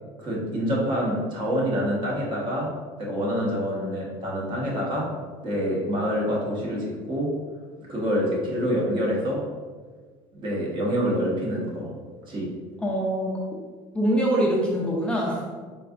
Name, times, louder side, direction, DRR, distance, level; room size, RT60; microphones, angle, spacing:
voice 1, 0.2-5.2 5.4-7.4 7.9-9.5 10.4-11.9 12.3-12.5, equal, 40° right, -3 dB, 1.4 m, -26 dB
voice 2, 12.8-13.3 13.9-15.4, equal, 10° left, -4 dB, 0.6 m, -24 dB
4.5 x 3.8 x 2.5 m, 1.5 s
supercardioid pair, 115°, 13 cm